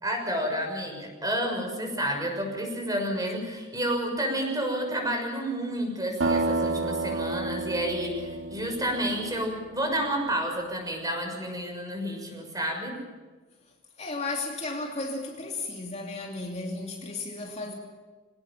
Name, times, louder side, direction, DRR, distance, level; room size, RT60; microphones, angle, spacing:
voice 1, 0.0-13.0, right 1 dB, 20° right, 6.4 m, -30 dB
sound 1, 6.2-10.0, right 3 dB, 75° right, 1.8 m, -30 dB
voice 2, 14.0-17.7, left 3 dB, 35° left, 2.8 m, -34 dB
24.5 x 19.0 x 7.4 m
head